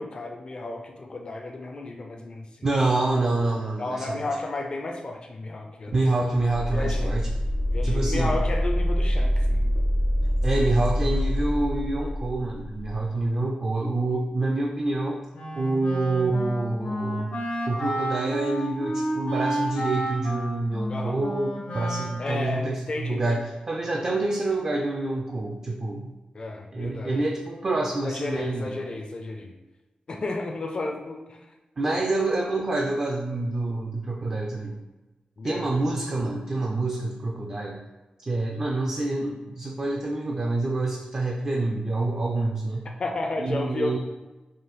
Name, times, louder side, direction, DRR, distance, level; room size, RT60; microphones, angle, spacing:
voice 1, 0.0-2.7 3.8-6.3 6.7-7.1 7.7-9.7 20.9-21.2 22.2-23.4 26.3-27.2 28.0-29.5 30.1-31.5 35.4-35.7 43.0-44.0, left 2 dB, 35° left, 2 dB, 0.4 m, -32 dB
voice 2, 2.6-4.2 5.9-7.3 7.8-8.3 10.4-15.2 15.6-17.3 17.7-26.1 26.7-28.8 31.8-34.8 35.4-37.8 38.2-42.9 43.4-44.0, right 2 dB, 35° right, 0 dB, 0.4 m, -27 dB
sound 1, 6.5-13.0, equal, 80° right, 0.7 m, -25 dB
Wind instrument woodwind instrument, 15.3-22.7, right 1 dB, 80° left, 0.9 m, -31 dB
4.8 x 2.7 x 3.0 m, 1.1 s
wide cardioid pair, 165°, 2 cm